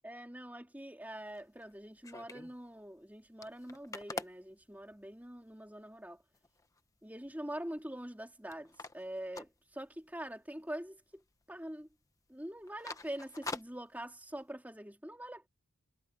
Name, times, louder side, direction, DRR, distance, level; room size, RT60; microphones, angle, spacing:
voice 1, 0.0-6.2 7.0-11.2 11.5-11.9 12.3-15.5, right 1 dB, 5° right, 3.2 m, -44 dB
sound 1, 1.2-2.6 3.0-3.1 3.2-5.4 5.9-6.0 6.3-6.8 7.2-8.2 8.5-10.3 10.6-10.7 11.1-11.6 11.8-12.0 12.4-14.4, left 3 dB, 15° left, 1.1 m, -46 dB
head